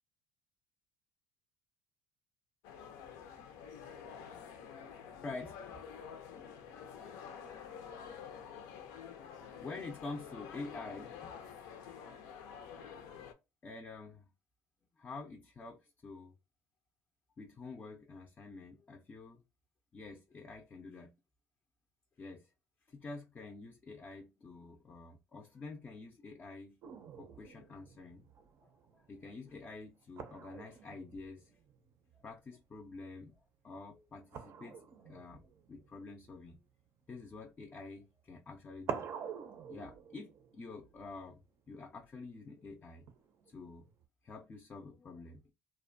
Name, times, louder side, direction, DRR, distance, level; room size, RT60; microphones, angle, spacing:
sound 1, 2.6-13.3, left 7 dB, 85° left, 0.5 m, -49 dB
voice 1, 5.2-5.8 9.6-11.3 13.6-14.3 15.0-16.4 17.4-19.4 19.9-21.1 22.2-22.5 22.9-26.8 27.2-28.2 28.6-31.5 32.2-33.3 33.6-35.4 35.7-36.6 37.1-39.1 39.7-41.4 41.7-43.1 43.5-43.8 44.2-45.5, left 3 dB, 25° left, 0.4 m, -48 dB
sound 2, 26.8-32.7 33.0-33.4 34.3-37.5 38.4-38.5 38.9-42.1 43.1-44.0, right 7 dB, 50° right, 0.5 m, -48 dB
2.5 x 2.1 x 2.5 m
cardioid pair, 115°, 6 cm